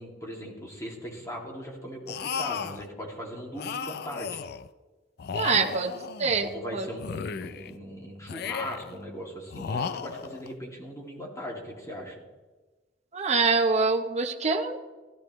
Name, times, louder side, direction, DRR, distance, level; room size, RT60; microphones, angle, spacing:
voice 1, 0.0-4.4 5.4-5.7 6.4-12.2, equal, 15° left, -2 dB, 2.5 m, -39 dB
sound 1, 2.1-2.9 3.6-4.7 5.2-6.5 7.0-7.8 8.3-9.0 9.5-10.5, left 6 dB, 60° left, 0.4 m, -35 dB
voice 2, 5.3-5.9 6.2-6.9 13.1-14.8, right 4 dB, 40° right, 4 dB, 0.8 m, -25 dB
16.5 x 13.0 x 3.1 m, 1.3 s
head